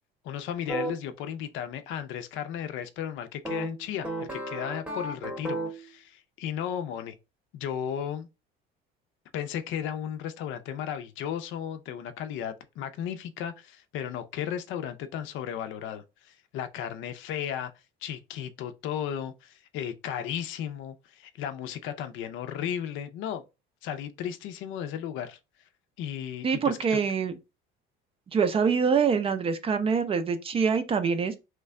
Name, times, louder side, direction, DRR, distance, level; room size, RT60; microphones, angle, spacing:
voice 1, 0.2-7.1 7.5-8.3 9.3-17.7 18.0-23.4 23.8-25.4 26.0-27.0, left 9 dB, 65° left, 0.5 m, -35 dB
sound 1, 0.7-0.9 3.4-5.9, right 1 dB, 5° right, 0.8 m, -33 dB
voice 2, 26.4-27.3 28.3-31.3, right 6 dB, 25° right, 0.4 m, -25 dB
3.2 x 2.2 x 3.5 m
cardioid pair, 130°, 21 cm